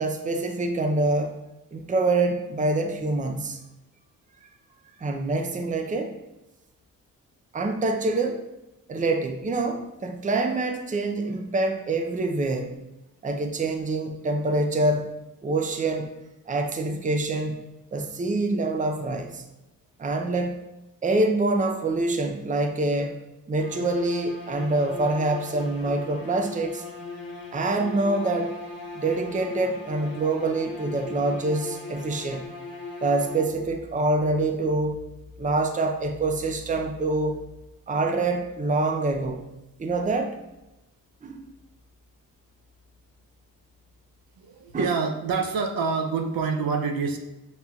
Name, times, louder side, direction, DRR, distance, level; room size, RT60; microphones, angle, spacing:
voice 1, 0.0-1.3 1.7-3.6 5.0-6.2 7.5-8.4 8.9-12.8 13.2-15.1 15.4-16.2 16.5-17.6 17.9-19.4 20.0-20.6 21.0-23.2 23.5-26.8 27.5-28.5 28.9-32.5 33.0-35.0 35.4-37.4 37.9-39.5 39.8-40.4 41.2-41.5 44.7-44.9, right 2 dB, 20° right, 4 dB, 0.5 m, -25 dB
sound 1, 23.6-33.8, left 3 dB, 90° left, 0.8 m, -39 dB
voice 2, 44.4-47.2, right 5 dB, 75° right, 4 dB, 0.6 m, -26 dB
5.8 x 2.7 x 2.3 m, 0.96 s
cardioid pair, 70°, 35 cm